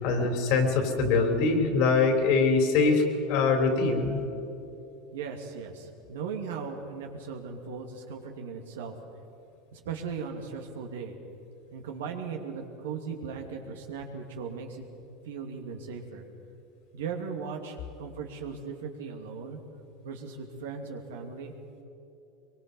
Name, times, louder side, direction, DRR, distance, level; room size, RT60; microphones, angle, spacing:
voice 1, 0.0-3.0 3.3-4.2, left 4 dB, 65° left, 4 dB, 4.1 m, -23 dB
voice 2, 5.1-8.9 9.7-11.1 11.7-14.8 15.3-16.3 16.9-19.6 20.0-21.5, right 5 dB, 90° right, 2 dB, 2.6 m, -38 dB
23.0 x 23.0 x 5.5 m, 2.8 s
supercardioid pair, 110°, 0 cm